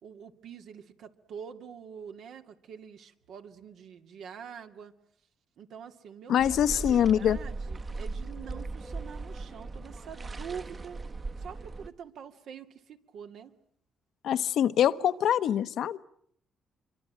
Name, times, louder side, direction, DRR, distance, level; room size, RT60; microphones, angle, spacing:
voice 1, 0.0-4.9 5.6-11.0 11.4-13.5, right 7 dB, 75° right, 6 dB, 2.5 m, -45 dB
voice 2, 6.3-7.4 14.2-16.0, left 10 dB, 75° left, 12 dB, 1.1 m, -24 dB
sound 1, 6.4-11.9, right 3 dB, 35° right, 1.5 m, -38 dB
26.5 x 24.5 x 8.9 m, 0.68 s
cardioid pair, 90°, 0 cm